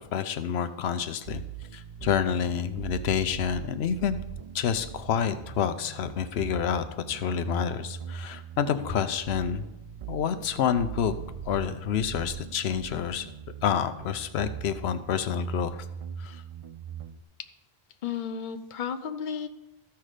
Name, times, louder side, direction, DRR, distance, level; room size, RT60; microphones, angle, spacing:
voice 1, 0.1-1.4 1.7-4.2 4.5-9.6 10.1-11.1 11.5-13.3 13.6-15.9 16.2-16.4, left 8 dB, 85° left, 10 dB, 0.9 m, -28 dB
sound 1, 1.3-17.2, right 8 dB, 50° right, 0.4 m, -40 dB
voice 2, 18.0-19.5, left 7 dB, 55° left, 8 dB, 0.8 m, -33 dB
13.5 x 5.9 x 4.9 m, 0.94 s
omnidirectional pair, 1.0 m